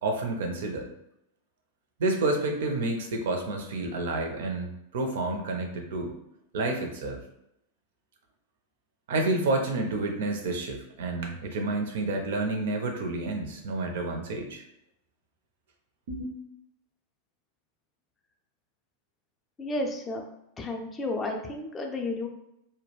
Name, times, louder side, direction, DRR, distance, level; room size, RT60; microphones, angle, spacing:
voice 1, 0.0-0.9 2.0-4.7 4.9-6.2 6.5-7.2 9.1-14.6 16.1-16.4, right 2 dB, 55° right, 4 dB, 0.4 m, -29 dB
voice 2, 19.6-20.2 20.6-22.3, left 2 dB, 20° left, 2 dB, 0.4 m, -32 dB
2.2 x 2.1 x 3.1 m, 0.81 s
figure-of-eight pair, 90°, 0 cm